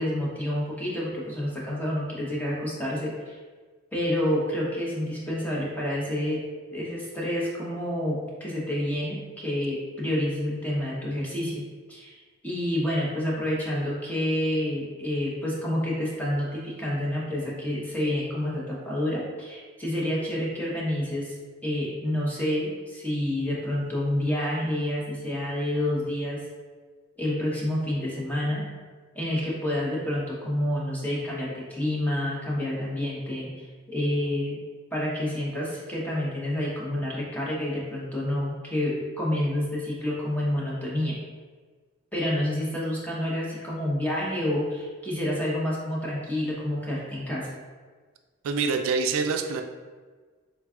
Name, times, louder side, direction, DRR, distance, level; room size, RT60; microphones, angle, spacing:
voice 1, 0.0-3.4 3.9-6.4 6.7-12.1 12.4-21.3 21.6-26.5 27.2-28.7 29.1-34.6 34.9-41.2 42.1-47.5, left 1 dB, 10° left, -6 dB, 0.7 m, -28 dB
voice 2, 48.4-49.6, right 5 dB, 90° right, 6 dB, 0.3 m, -25 dB
3.5 x 2.2 x 3.5 m, 1.4 s
head